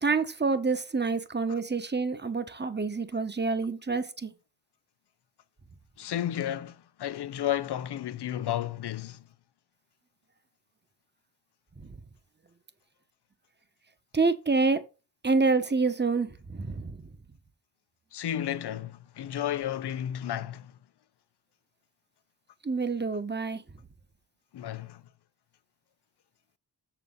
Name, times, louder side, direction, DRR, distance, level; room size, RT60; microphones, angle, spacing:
voice 1, 0.0-4.3 11.8-11.9 14.1-14.8 15.2-17.0 22.6-23.6, right 4 dB, 25° right, 1.3 m, -27 dB
voice 2, 6.0-9.2 18.1-20.7 24.5-25.0, left 11 dB, 75° left, 0.8 m, -32 dB
7.0 x 6.8 x 3.9 m
cardioid pair, 45°, 40 cm